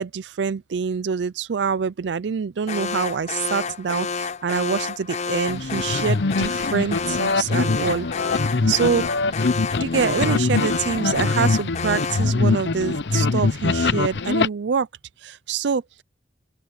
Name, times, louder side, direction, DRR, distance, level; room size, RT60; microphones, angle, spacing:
voice 1, 0.0-8.3 8.6-9.1 9.8-14.9 15.2-15.8, right 6 dB, 85° right, 0.5 m, -25 dB
Alarm, 2.7-12.4, left 5 dB, 40° left, 0.6 m, -30 dB
sound 1, 5.5-14.5, left 3 dB, 80° left, 0.8 m, -23 dB
open air
head